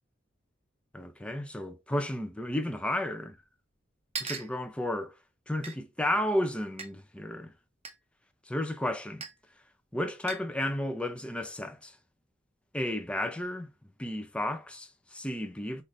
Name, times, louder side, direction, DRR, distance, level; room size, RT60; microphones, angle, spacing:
voice 1, 0.9-3.4 4.2-5.2 5.5-7.5 8.5-9.2 9.9-12.0 12.7-13.7 14.0-15.8, left 1 dB, 5° left, 0.6 m, -32 dB
sound 1, 3.4-3.5 4.1-4.5 5.6-5.7 6.8-6.9 7.8-8.0 9.2-9.4 10.3-10.5, right 5 dB, 30° right, 0.7 m, -38 dB
5.7 x 2.6 x 3.2 m
head